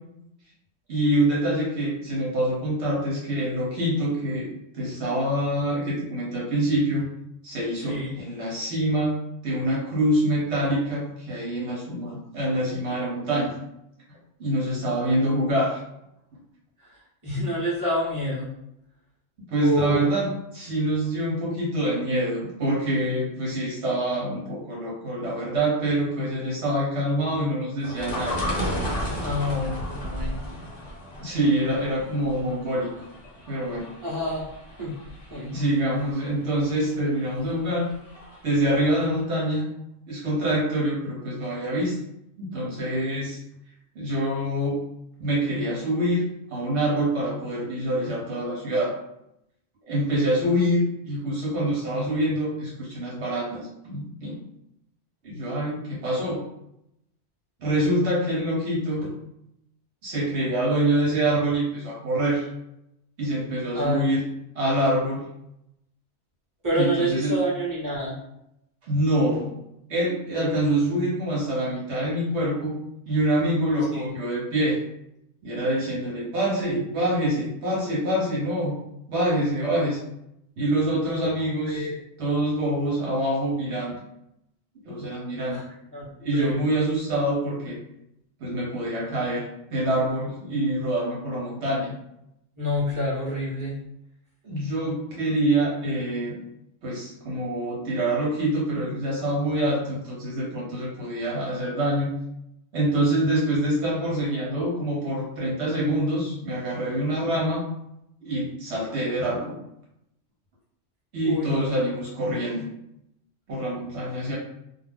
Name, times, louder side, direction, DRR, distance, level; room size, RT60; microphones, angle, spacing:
voice 1, 0.9-4.5 4.7-7.1 7.4-9.2 9.4-13.6 14.4-15.8 16.3-16.4 19.5-20.3 20.5-28.4 31.2-33.1 33.5-33.9 35.5-37.9 38.4-39.6 40.1-42.0 42.4-43.4 43.9-44.8 45.2-46.2 46.5-48.9 49.9-54.4 55.2-56.4 57.6-59.1 60.0-62.5 63.2-64.2 64.5-65.3 66.7-67.4 68.9-69.5 69.9-72.7 73.1-74.8 75.4-78.7 79.1-80.0 80.6-81.9 82.2-84.0 84.8-85.6 86.2-87.8 88.4-91.9 94.4-96.4 96.8-102.1 102.7-107.6 108.2-109.6 111.1-112.7 113.5-114.3, right 1 dB, 70° right, -5 dB, 1.1 m, -25 dB
voice 2, 7.7-8.1 16.8-18.6 19.6-20.0 29.2-30.5 34.0-34.4 34.8-35.0 35.3-35.6 63.7-64.1 66.6-68.2 73.9-74.1 76.4-76.8 80.9-81.3 81.6-81.9 85.5-85.6 85.9-86.6 92.6-93.9 111.2-111.8, equal, 15° right, -9 dB, 1.1 m, -28 dB
sound 1, 27.8-38.6 38.9-39.0, equal, 40° left, 0.6 m, -34 dB
2.6 x 2.1 x 3.3 m, 0.81 s
omnidirectional pair, 1.2 m